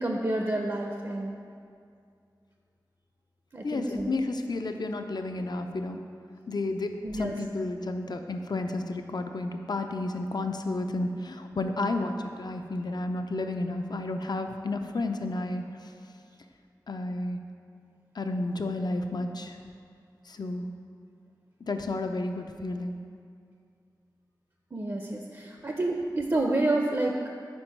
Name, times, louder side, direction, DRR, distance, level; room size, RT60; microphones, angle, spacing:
voice 1, 0.0-1.4 3.5-4.1 7.0-7.3 24.7-27.1, right 2 dB, 40° right, 1 dB, 0.4 m, -29 dB
voice 2, 3.6-6.1 6.5-15.9 16.9-17.4 18.1-19.6 20.3-20.7 21.6-23.0, left 2 dB, 65° left, 6 dB, 0.4 m, -32 dB
4.5 x 4.3 x 5.3 m, 2.3 s
wide cardioid pair, 50°, 8 cm